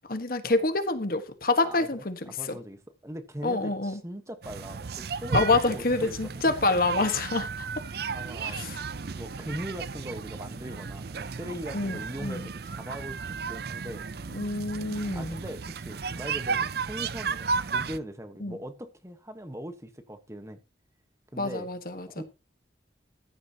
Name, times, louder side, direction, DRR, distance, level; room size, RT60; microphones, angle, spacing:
voice 1, 0.1-2.6 3.4-4.0 5.3-7.7 8.4-8.8 11.7-12.5 14.3-15.4 18.4-18.6 21.4-22.1, left 3 dB, 50° left, 1.4 m, -27 dB
voice 2, 1.6-5.4 5.7-6.2 8.1-8.6 9.1-14.0 14.8-20.6 21.3-21.7 22.1-22.2, equal, 15° right, 1.2 m, -40 dB
sound 1, 4.4-18.0, right 5 dB, 55° right, 0.5 m, -34 dB
14.5 x 10.5 x 2.9 m
head